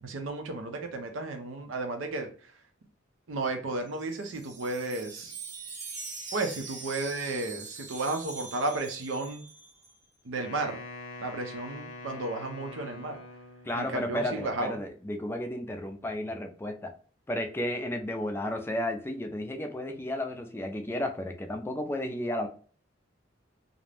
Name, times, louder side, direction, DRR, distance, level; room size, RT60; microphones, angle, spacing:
voice 1, 0.0-2.3 3.3-5.3 6.3-9.4 10.2-10.8 11.2-13.2 13.7-14.8, right 2 dB, 90° right, 5 dB, 0.5 m, -33 dB
Wind chime, 3.7-9.9, right 4 dB, 40° right, 0.6 m, -43 dB
Wind instrument woodwind instrument, 10.4-13.9, left 2 dB, 75° left, 0.5 m, -44 dB
voice 2, 13.6-16.9 17.3-22.5, left 1 dB, 10° left, 5 dB, 0.3 m, -33 dB
2.5 x 2.0 x 3.2 m, 0.42 s
head